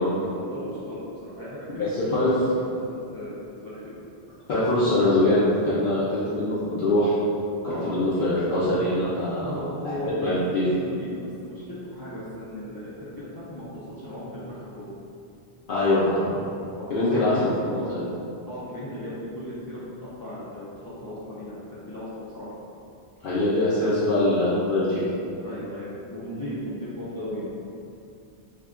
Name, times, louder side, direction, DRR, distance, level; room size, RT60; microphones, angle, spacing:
voice 1, 0.0-3.9 7.6-7.9 9.4-10.4 10.7-14.9 16.7-17.5 17.7-17.8 18.5-22.6 25.4-27.5, equal, 25° left, -10 dB, 0.5 m, -37 dB
voice 2, 1.7-2.3 4.5-7.1 7.6-9.5 9.8-10.0 10.2-10.7 15.7-16.4 16.9-18.0 23.2-25.0, left 1 dB, 60° left, -10 dB, 0.8 m, -23 dB
3.4 x 2.3 x 3.6 m, 2.6 s
omnidirectional pair, 1.1 m